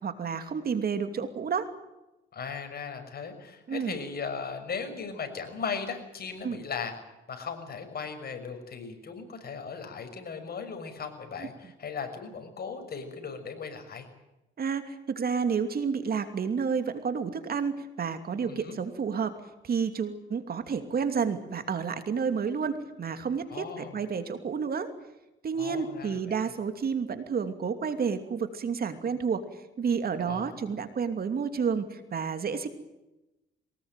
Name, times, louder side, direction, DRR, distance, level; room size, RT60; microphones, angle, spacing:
voice 1, 0.0-1.7 3.7-4.0 6.4-6.6 14.6-19.4 19.6-24.9 25.4-29.4 29.8-32.7, right 6 dB, 50° right, 9 dB, 2.8 m, -30 dB
voice 2, 2.3-6.9 7.3-14.1 18.4-18.8 23.5-24.0 25.6-26.4 30.2-30.6, left 5 dB, 50° left, 6 dB, 6.1 m, -37 dB
23.0 x 20.0 x 9.2 m, 0.96 s
cardioid pair, 90°, 20 cm